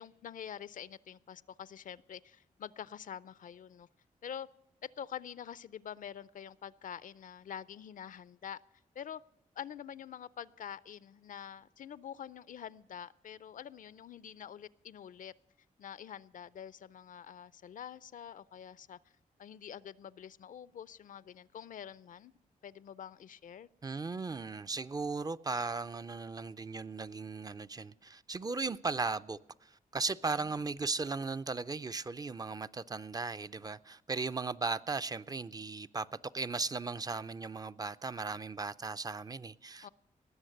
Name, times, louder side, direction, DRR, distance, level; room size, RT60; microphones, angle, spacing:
voice 1, 0.0-3.9 4.2-4.5 4.8-8.6 9.0-9.2 9.6-15.3 15.8-19.0 19.4-22.3 22.6-23.7 30.4-30.6 39.8-39.9, left 9 dB, 70° left, 0.4 m, -46 dB
voice 2, 23.8-36.1 36.3-39.9, right 4 dB, 25° right, 0.4 m, -37 dB
19.0 x 7.2 x 6.4 m
cardioid pair, 80°, 14 cm